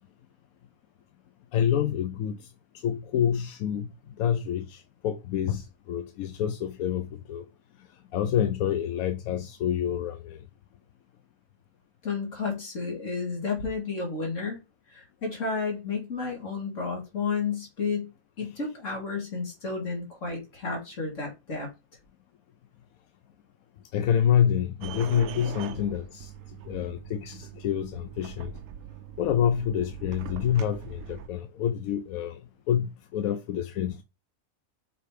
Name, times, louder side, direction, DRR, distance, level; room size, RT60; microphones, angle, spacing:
voice 1, 1.5-2.4 2.8-3.9 4.2-7.4 8.1-10.4 23.9-26.3 26.6-28.5 29.2-32.4 32.7-34.0, left 9 dB, 85° left, 1.0 m, -27 dB
voice 2, 12.0-14.6 14.9-18.1 18.4-21.7, left 4 dB, 65° left, 2.8 m, -32 dB
sound 1, 24.8-31.3, right 10 dB, 90° right, 1.1 m, -42 dB
6.6 x 3.2 x 4.8 m
omnidirectional pair, 1.4 m